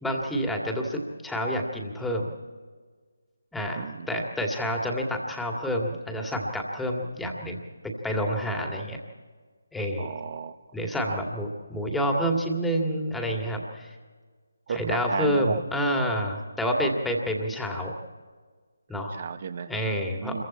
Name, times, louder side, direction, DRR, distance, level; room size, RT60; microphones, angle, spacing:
voice 1, 0.0-2.3 3.5-7.7 8.0-9.0 9.7-10.1 10.7-13.9 14.7-17.9 18.9-19.1 19.7-20.4, equal, 5° left, 0 dB, 2.2 m, -28 dB
voice 2, 3.7-4.1 8.7-8.8 10.0-10.6 11.0-11.2 14.7-15.6 18.9-19.7 20.2-20.4, right 7 dB, 35° right, 11 dB, 1.2 m, -34 dB
28.0 x 23.0 x 4.4 m, 1.5 s
figure-of-eight pair, 150°, 0 cm